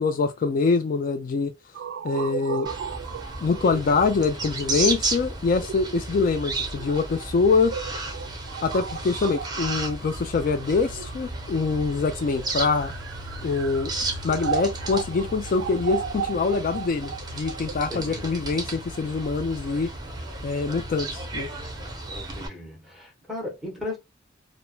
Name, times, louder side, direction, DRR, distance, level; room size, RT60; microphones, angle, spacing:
voice 1, 0.0-1.5 2.0-2.7 3.4-7.7 8.6-12.9 13.4-13.9 14.2-19.9 20.4-21.5, left 4 dB, 50° left, 0.3 m, -24 dB
sound 1, 1.7-11.6 12.3-19.3, right 8 dB, 85° right, 0.3 m, -36 dB
sound 2, 2.6-22.5, right 2 dB, 25° right, 0.7 m, -34 dB
voice 2, 17.9-18.3 22.1-24.0, left 2 dB, ahead, 1.0 m, -36 dB
3.2 x 2.0 x 2.2 m
head